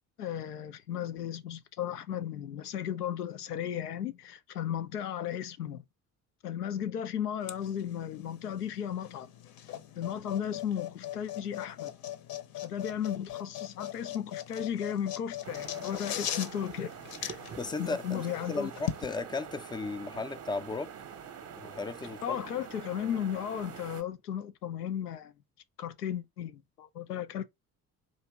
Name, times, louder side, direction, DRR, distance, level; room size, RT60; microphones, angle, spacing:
voice 1, 0.2-5.8 6.4-9.3 10.0-11.9 12.6-16.9 17.2-17.4 17.8-18.7 22.2-25.3 25.8-27.5, left 9 dB, 85° left, 0.6 m, -35 dB
sound 1, 7.4-19.0, left 11 dB, 50° left, 0.8 m, -40 dB
sound 2, 15.4-24.0, right 7 dB, 35° right, 0.7 m, -46 dB
voice 2, 17.6-20.9 21.6-22.4, left 3 dB, 10° left, 0.4 m, -35 dB
4.1 x 2.8 x 3.3 m
figure-of-eight pair, 50°, 46 cm